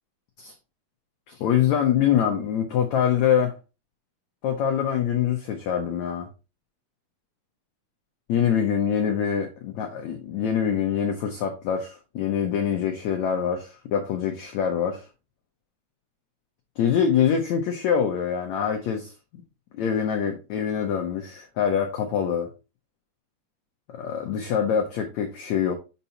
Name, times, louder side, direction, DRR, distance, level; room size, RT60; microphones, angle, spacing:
voice 1, 1.3-3.5 4.4-6.3 8.3-15.0 16.8-19.1 19.7-22.5 23.9-25.7, left 8 dB, 85° left, 1.6 m, -24 dB
8.1 x 5.6 x 2.8 m
omnidirectional pair, 4.5 m